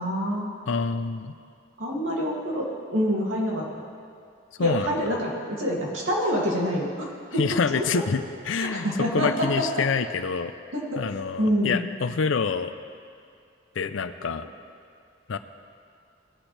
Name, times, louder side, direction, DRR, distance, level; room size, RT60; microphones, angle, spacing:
voice 1, 0.0-0.5 1.8-3.6 4.6-7.1 7.3-7.4 7.7-7.8 8.6-9.8 10.7-11.0 11.4-11.9, equal, 80° right, -3 dB, 2.4 m, -26 dB
voice 2, 0.7-1.3 4.6-5.0 7.4-10.5 11.0-12.7 13.8-14.5 15.3-15.4, left 5 dB, 70° left, 11 dB, 0.5 m, -27 dB
19.0 x 8.9 x 3.3 m, 2.4 s
head